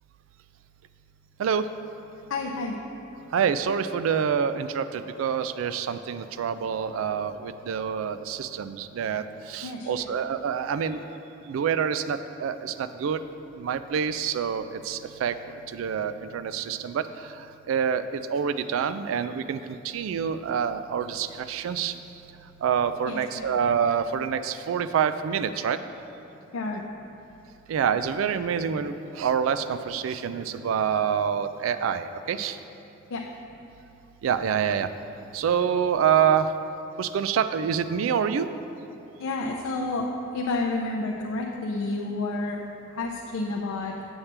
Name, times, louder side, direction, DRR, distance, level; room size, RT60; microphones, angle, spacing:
voice 1, 2.3-2.8 9.6-10.1 23.1-23.6 26.5-26.8 33.1-33.3 39.2-42.6 42.9-43.9, left 2 dB, 80° left, -1 dB, 0.5 m, -30 dB
voice 2, 3.3-11.0 11.5-13.2 13.6-15.3 15.7-17.1 17.7-21.9 22.6-25.8 27.7-32.6 34.2-34.9 35.3-36.5 37.0-38.5, right 7 dB, 75° right, 12 dB, 0.3 m, -26 dB
7.1 x 7.1 x 3.3 m, 2.9 s
head